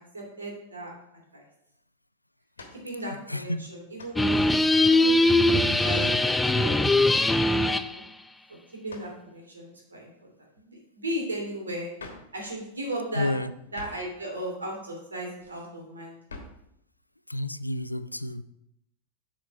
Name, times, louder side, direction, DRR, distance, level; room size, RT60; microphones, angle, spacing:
voice 1, 0.0-1.4 2.7-4.6 4.9-8.0 8.7-10.1 10.5-11.9 12.3-13.3 13.7-16.2, right 1 dB, 75° right, -1 dB, 2.5 m, -37 dB
sound 1, 2.5-2.9 4.0-4.2 4.9-5.2 6.4-6.7 8.9-9.2 12.0-12.3 13.7-14.1 16.3-16.6, left 3 dB, 70° left, 1.2 m, -44 dB
voice 2, 3.3-3.6 13.2-13.5 17.3-18.4, left 1 dB, 85° left, 14 dB, 0.3 m, -30 dB
sound 2, 4.2-7.9, left 2 dB, 5° left, 0.4 m, -21 dB
7.7 x 4.2 x 4.9 m, 0.78 s
figure-of-eight pair, 90°, 0 cm